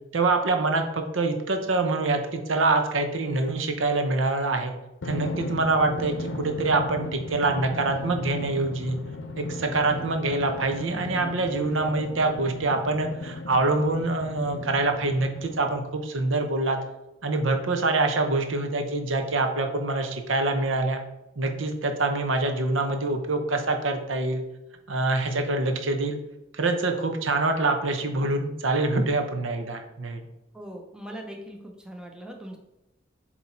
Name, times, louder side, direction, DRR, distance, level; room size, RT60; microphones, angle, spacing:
voice 1, 0.1-4.7 5.0-9.0 9.4-16.8 17.2-21.0 21.4-24.4 24.9-26.2 26.5-30.2, right 2 dB, 70° right, 5 dB, 0.8 m, -25 dB
Drum, 5.0-16.1, left 2 dB, 65° left, 0.7 m, -36 dB
voice 2, 30.5-32.6, right 1 dB, 5° right, 1 dB, 0.7 m, -40 dB
7.9 x 3.0 x 4.2 m, 0.95 s
head